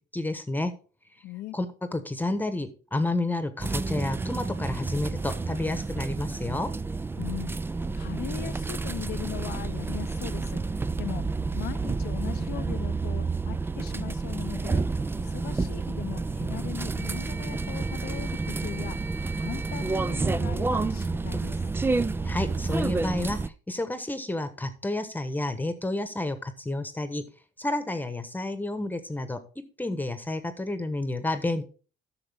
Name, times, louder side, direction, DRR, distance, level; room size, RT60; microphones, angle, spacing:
voice 1, 0.1-0.7 1.5-6.7 22.2-23.4 23.7-27.2 27.6-29.4 29.8-31.6, left 2 dB, 10° left, 1.2 m, -30 dB
voice 2, 1.2-1.6 7.2-7.6 7.9-10.6 11.0-11.2 11.5-14.8 15.2-19.0 19.3-21.6, left 15 dB, 75° left, 0.7 m, -39 dB
sound 1, 3.6-23.5, right 3 dB, 15° right, 0.4 m, -30 dB
11.5 x 6.6 x 3.5 m
cardioid pair, 110°, 17 cm